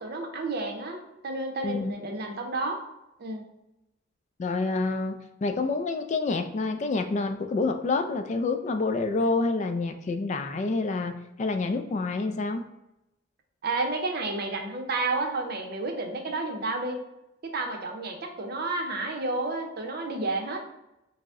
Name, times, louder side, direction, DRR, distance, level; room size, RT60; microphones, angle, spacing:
voice 1, 0.0-2.8 3.2-3.4 13.6-17.0 17.4-20.6, right 2 dB, 50° right, 3 dB, 0.6 m, -31 dB
voice 2, 1.6-1.9 4.4-12.6, left 3 dB, 35° left, 7 dB, 0.3 m, -28 dB
4.9 x 2.1 x 3.5 m, 0.91 s
head